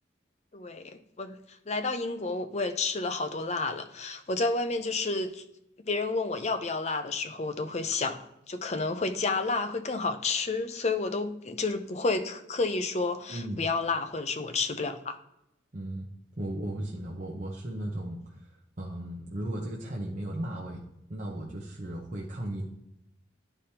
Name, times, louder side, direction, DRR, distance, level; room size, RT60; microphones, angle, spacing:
voice 1, 0.5-5.4 5.8-8.2 8.5-15.1, left 3 dB, 35° left, 8 dB, 0.6 m, -30 dB
voice 2, 13.3-13.6 15.7-16.1 16.4-18.5 18.8-20.8 21.1-22.6, right 1 dB, 40° right, -3 dB, 0.9 m, -36 dB
11.0 x 5.1 x 2.9 m, 0.81 s
head